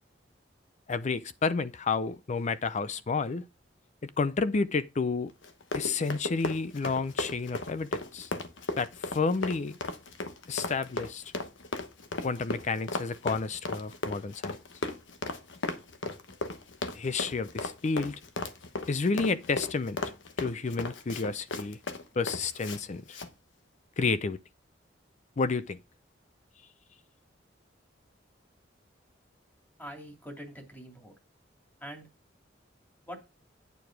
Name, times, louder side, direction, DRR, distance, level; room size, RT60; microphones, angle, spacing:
voice 1, 0.9-3.4 4.0-5.3 5.7-8.3 8.8-9.8 10.5-11.2 12.2-14.6 16.9-18.2 18.9-20.0 20.4-21.8 22.2-23.2 24.0-24.4 25.4-25.8, left 4 dB, 40° left, 0.5 m, -30 dB
Run, 5.4-22.8 23.1-23.3, left 2 dB, 85° left, 1.1 m, -36 dB
voice 2, 29.8-31.1 31.8-32.1 33.1-33.2, equal, 10° left, 2.5 m, -43 dB
9.2 x 4.8 x 4.6 m
head